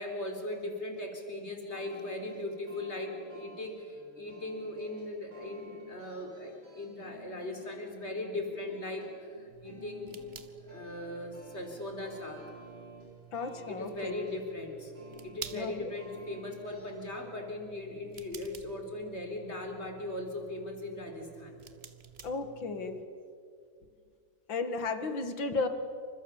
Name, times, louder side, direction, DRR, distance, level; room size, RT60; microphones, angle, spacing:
voice 1, 0.0-10.2 10.6-12.4 13.7-14.9 15.2-21.6, left 1 dB, 30° left, 3 dB, 4.3 m, -39 dB
sound 1, 1.7-17.2, right 1 dB, 85° right, 7.7 m, -53 dB
sound 2, 9.5-23.0, right 7 dB, 40° right, 1.2 m, -52 dB
voice 2, 13.3-14.1 15.5-15.9 22.2-23.0 24.5-25.7, left 3 dB, 70° left, 8 dB, 2.7 m, -34 dB
28.5 x 26.0 x 7.4 m, 2.3 s
omnidirectional pair, 2.2 m